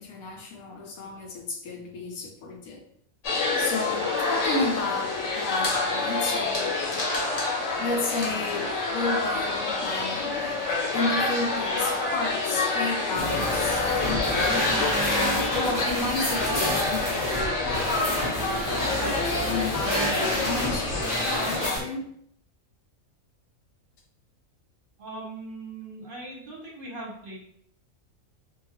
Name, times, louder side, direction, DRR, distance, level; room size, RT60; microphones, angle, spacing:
voice 1, 0.0-2.8 3.6-6.8 7.8-10.6 10.9-14.9 15.5-18.3 19.4-22.1, left 3 dB, 90° left, 1 dB, 1.1 m, -32 dB
sound 1, 3.2-21.8, left 3 dB, 65° left, 1.0 m, -27 dB
sound 2, 13.1-21.8, equal, 15° left, 0.8 m, -29 dB
voice 2, 25.0-27.4, right 2 dB, 50° right, -3 dB, 0.8 m, -39 dB
2.8 x 2.3 x 2.8 m, 0.65 s
omnidirectional pair, 1.4 m